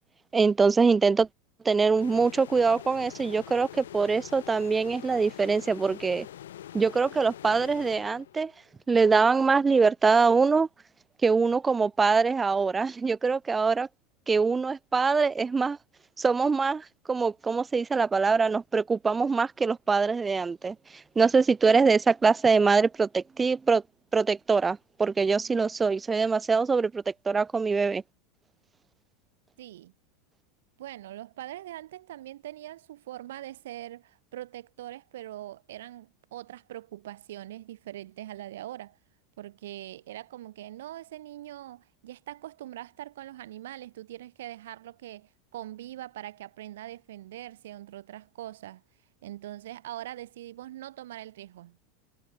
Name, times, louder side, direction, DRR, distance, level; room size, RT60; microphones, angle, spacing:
voice 1, 0.3-1.3 1.6-6.3 6.7-8.5 8.9-10.7 11.2-13.9 14.3-15.8 16.2-23.8 24.1-28.0, right 4 dB, 20° right, 0.9 m, -23 dB
sound 1, 2.0-8.6, left 12 dB, 75° left, 1.9 m, -44 dB
voice 2, 29.6-29.9 30.8-39.0 39.4-48.8 49.2-51.9, right 14 dB, 70° right, 1.0 m, -42 dB
hypercardioid pair, 85°, 0 cm